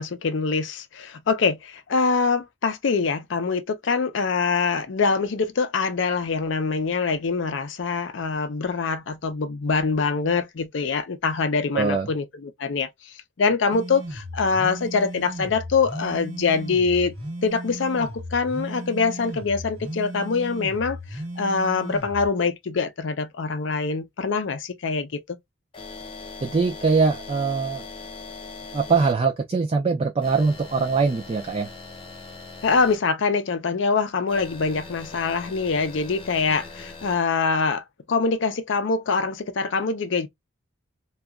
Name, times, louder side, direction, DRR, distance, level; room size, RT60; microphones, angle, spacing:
voice 1, 0.0-17.1 17.4-25.2 32.6-40.3, left 4 dB, 65° left, 0.5 m, -24 dB
voice 2, 11.7-12.1 26.4-27.8 28.7-31.7, right 4 dB, 30° right, 0.3 m, -22 dB
sound 1, 13.7-22.3, equal, 65° right, 0.9 m, -36 dB
sound 2, 25.7-29.1 30.2-33.0 34.3-37.2, left 3 dB, 25° left, 0.8 m, -40 dB
2.8 x 2.3 x 2.3 m
head